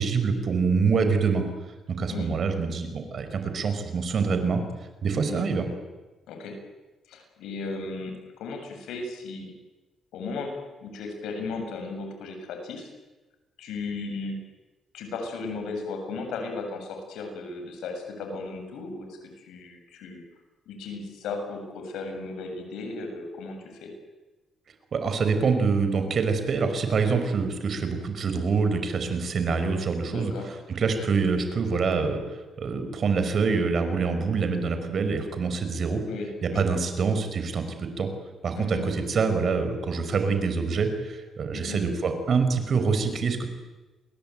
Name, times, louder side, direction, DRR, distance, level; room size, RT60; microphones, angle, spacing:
voice 1, 0.0-1.4 1.9-4.6 5.0-5.7 24.9-30.3 30.8-36.0 36.4-38.1 38.4-43.5, right 5 dB, 50° right, 8 dB, 5.8 m, -25 dB
voice 2, 6.3-6.6 7.1-9.5 10.1-12.9 13.6-14.4 14.9-20.2 20.7-23.9 30.1-30.6 36.1-36.6 38.6-38.9 41.5-41.8, left 3 dB, 85° left, 4 dB, 7.7 m, -36 dB
29.0 x 22.0 x 9.3 m, 1.1 s
cardioid pair, 90°, 0 cm